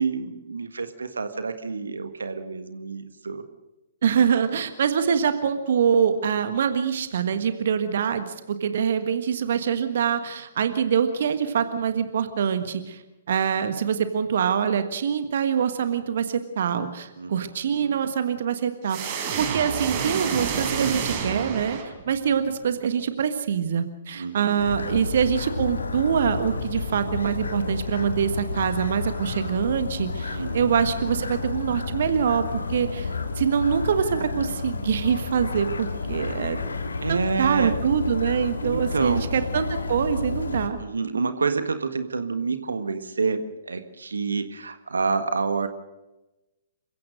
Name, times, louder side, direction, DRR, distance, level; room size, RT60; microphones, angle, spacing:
voice 1, 0.0-3.4 17.2-17.3 17.6-18.0 24.1-24.8 30.3-30.6 37.0-37.7 38.6-39.3 40.8-45.7, right 4 dB, 70° right, 9 dB, 1.6 m, -28 dB
voice 2, 4.0-13.0 13.3-21.8 22.1-36.6 37.1-40.8, right 7 dB, 55° right, 9 dB, 1.5 m, -24 dB
sound 1, 18.9-22.3, right 6 dB, 40° right, 4.8 m, -29 dB
sound 2, 24.6-40.7, left 4 dB, 75° left, 2.3 m, -31 dB
28.0 x 16.5 x 6.4 m, 1.0 s
figure-of-eight pair, 120°, 0 cm